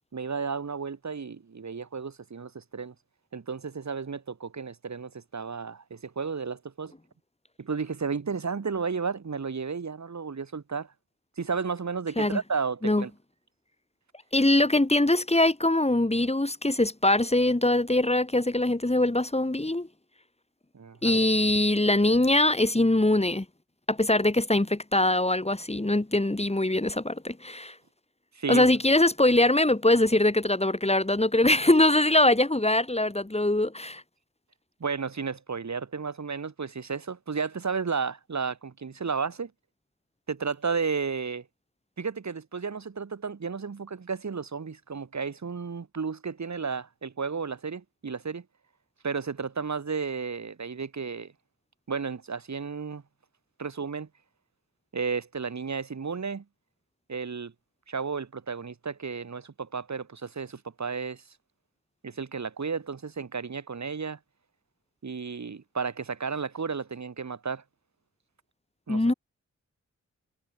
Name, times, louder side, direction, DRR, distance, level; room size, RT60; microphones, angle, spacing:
voice 1, 0.1-2.9 3.3-6.9 7.6-10.9 11.4-13.1 20.7-21.2 28.3-28.7 34.8-39.5 40.3-41.4 42.0-48.4 49.0-51.3 51.9-53.0 53.6-54.1 54.9-56.4 57.1-57.5 57.9-61.2 62.0-64.2 65.0-67.6 68.9-69.0, right 5 dB, 70° right, 7.7 m, -33 dB
voice 2, 14.3-19.9 21.0-23.5 23.9-27.8 28.5-34.0 68.9-69.1, left 1 dB, 20° left, 7.2 m, -23 dB
cardioid pair, 60°, 29 cm